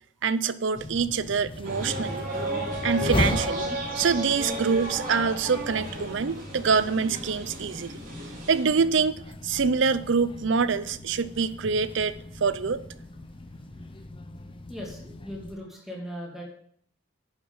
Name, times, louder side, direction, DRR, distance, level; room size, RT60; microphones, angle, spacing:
voice 1, 0.2-2.3 2.8-3.7 4.0-8.0 8.5-12.1 12.4-12.8, right 5 dB, 65° right, 15 dB, 0.5 m, -25 dB
sound 1, 0.7-15.6, left 1 dB, 25° left, 0.6 m, -37 dB
sound 2, 1.6-8.6, right 1 dB, 40° right, 3.8 m, -33 dB
voice 2, 14.7-16.4, equal, ahead, -3 dB, 2.6 m, -38 dB
9.7 x 7.1 x 5.5 m, 0.63 s
head